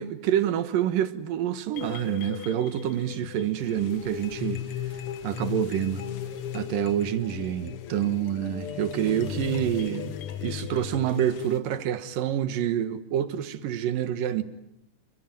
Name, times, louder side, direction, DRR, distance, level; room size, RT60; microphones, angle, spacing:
voice 1, 0.0-4.6 5.2-6.1 6.5-10.2 10.4-14.4, right 10 dB, 70° right, 2.9 m, -27 dB
sound 1, 1.7-11.6, left 9 dB, 60° left, 1.5 m, -37 dB
28.0 x 23.5 x 9.0 m
omnidirectional pair, 4.3 m